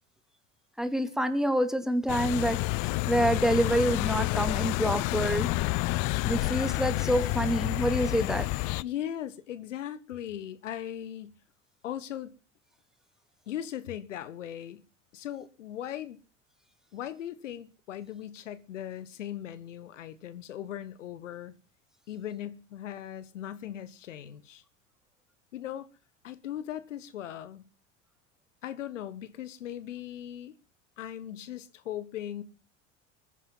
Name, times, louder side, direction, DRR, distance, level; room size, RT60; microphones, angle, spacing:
voice 1, 0.8-5.5 6.2-8.5, right 1 dB, ahead, 2.6 m, -27 dB
sound 1, 2.1-8.8, left 21 dB, 55° left, 0.7 m, -29 dB
voice 2, 8.8-11.3 11.8-12.3 13.5-14.8 15.1-16.2 16.9-21.6 22.1-24.6 25.5-25.9 26.2-27.6 28.6-30.5 31.0-32.4, left 11 dB, 80° left, 1.2 m, -38 dB
21.5 x 10.0 x 5.5 m
hypercardioid pair, 75°, 36 cm